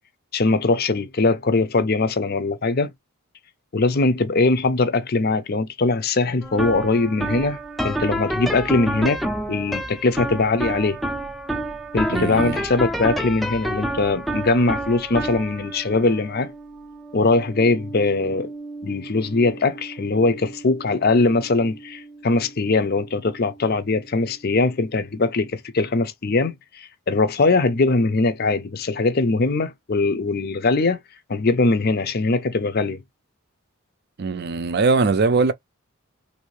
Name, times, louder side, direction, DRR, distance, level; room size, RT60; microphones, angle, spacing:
voice 1, 0.3-2.9 3.7-7.6 7.8-9.2 9.5-11.0 11.9-16.5 17.1-18.5 18.8-31.0 31.3-33.0, left 3 dB, 45° left, 0.6 m, -21 dB
sound 1, 6.4-23.6, right 1 dB, ahead, 0.5 m, -30 dB
voice 2, 12.1-12.6 34.2-35.5, right 4 dB, 50° right, 0.5 m, -21 dB
3.2 x 2.7 x 3.1 m
head